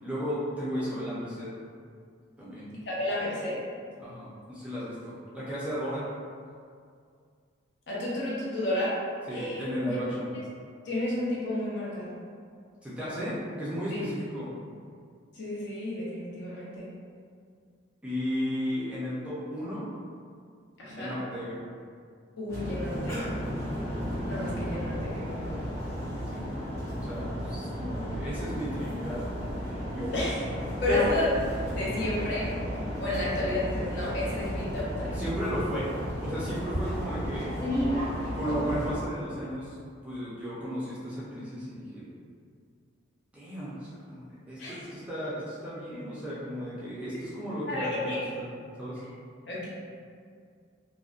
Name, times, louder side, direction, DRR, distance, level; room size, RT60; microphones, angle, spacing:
voice 1, 0.0-1.5 2.4-2.7 4.0-6.1 9.3-10.3 12.8-14.5 18.0-19.9 20.8-21.6 26.3-26.4 27.1-29.2 29.9-30.2 30.9-31.1 35.1-35.9 36.2-37.5 38.3-39.8 40.0-42.0 43.3-48.5 48.8-49.0, equal, 5° right, -10 dB, 0.4 m, -34 dB
voice 2, 2.8-3.6 7.9-8.9 9.3-10.0 10.3-10.4 10.8-12.2 13.9-14.0 15.4-16.9 20.8-21.1 22.4-23.3 24.3-25.5 30.1-30.4 30.8-31.3 31.7-32.5 33.0-35.1 44.6-44.8 47.7-48.2 49.5-49.7, left 2 dB, 60° left, -7 dB, 0.6 m, -31 dB
sound 1, 22.5-39.0, equal, 15° left, 0.9 m, -33 dB
2.5 x 2.1 x 2.4 m, 2.2 s
head